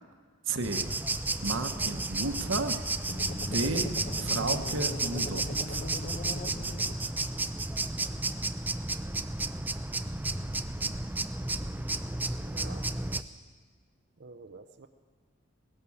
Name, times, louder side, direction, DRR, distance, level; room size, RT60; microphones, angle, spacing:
voice 1, 0.5-0.9 1.4-2.8 3.4-5.8, right 3 dB, 75° right, 6 dB, 1.0 m, -33 dB
sound 1, 0.6-13.2, right 2 dB, 10° right, 0.4 m, -32 dB
sound 2, 3.1-7.4, left 1 dB, 40° left, 0.9 m, -39 dB
voice 2, 12.3-12.9 14.2-14.9, right 4 dB, 55° right, 7 dB, 0.6 m, -49 dB
18.0 x 11.0 x 7.1 m, 1.5 s
head